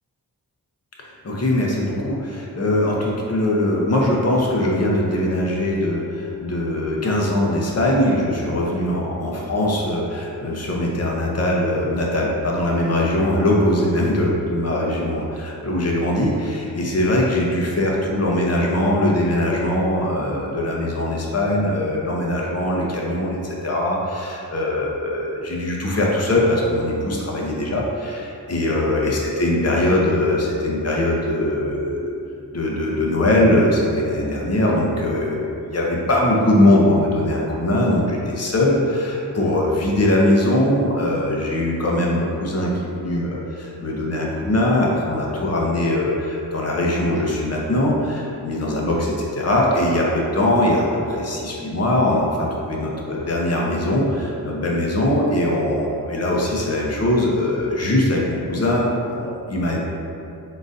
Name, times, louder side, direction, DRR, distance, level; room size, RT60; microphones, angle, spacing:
voice 1, 1.2-32.2 32.5-59.8, left 1 dB, 40° left, -3 dB, 0.8 m, -21 dB
4.0 x 3.8 x 2.6 m, 2.7 s
cardioid pair, 60°, 38 cm